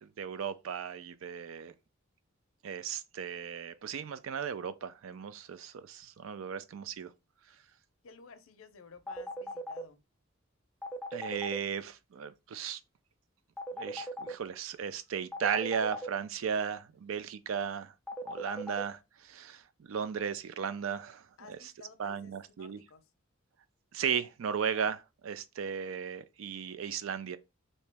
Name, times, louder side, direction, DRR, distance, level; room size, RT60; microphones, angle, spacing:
voice 1, 0.0-1.7 2.6-7.1 11.1-12.8 13.7-17.9 18.2-19.6 19.9-21.6 22.0-22.8 23.9-27.4, right 7 dB, 75° right, 0.4 m, -36 dB
voice 2, 8.0-10.0 21.4-23.0, left 5 dB, 80° left, 0.5 m, -54 dB
sound 1, 9.1-9.8 10.8-11.6 13.6-14.3 15.3-16.1 18.1-18.8, equal, ahead, 0.4 m, -38 dB
2.9 x 2.7 x 3.3 m
head